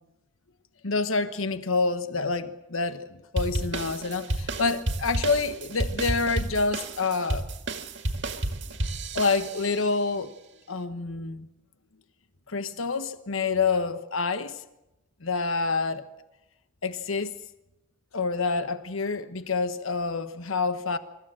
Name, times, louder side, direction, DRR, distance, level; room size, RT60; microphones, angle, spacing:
voice 1, 0.8-3.0 3.3-7.5 9.1-10.3 10.7-11.5 12.5-14.6 15.2-16.0 16.8-17.3 18.1-21.0, left 4 dB, 90° left, 1.2 m, -27 dB
sound 1, 3.4-9.8, right 1 dB, 60° right, 2.0 m, -31 dB
26.5 x 15.0 x 7.6 m
head